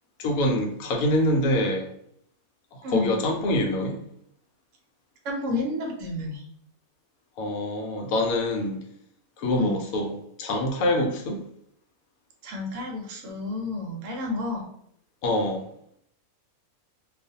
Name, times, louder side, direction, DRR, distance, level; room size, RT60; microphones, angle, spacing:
voice 1, 0.2-1.9 2.9-4.0 7.4-8.8 9.4-10.1 10.4-11.4 15.2-15.7, left 1 dB, 75° left, 2 dB, 1.0 m, -25 dB
voice 2, 2.8-3.2 5.2-6.4 9.6-9.8 12.4-14.7, left 2 dB, 65° right, 1 dB, 0.9 m, -30 dB
2.4 x 2.3 x 2.6 m, 0.69 s
omnidirectional pair, 1.6 m